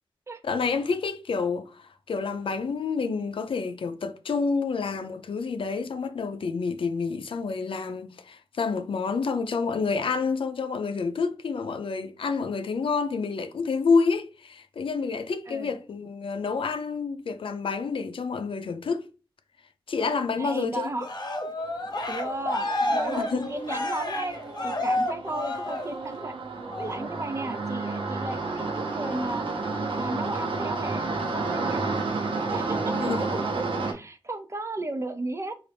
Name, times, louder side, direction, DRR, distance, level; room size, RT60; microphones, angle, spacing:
voice 1, 0.4-19.0 19.9-20.9 23.2-23.5 32.9-33.3, left 4 dB, 70° left, 0.5 m, -28 dB
voice 2, 15.5-15.8 20.4-21.1 22.1-26.4 26.8-29.5 30.0-31.8 32.5-33.5 33.8-35.6, right 2 dB, 30° right, 0.5 m, -34 dB
Cheering, 21.0-26.2 26.7-27.1, left 1 dB, 45° left, 0.8 m, -30 dB
sound 1, 21.6-21.9 22.2-33.9, right 3 dB, 70° right, 0.9 m, -31 dB
3.9 x 2.5 x 3.3 m
wide cardioid pair, 75°, 9 cm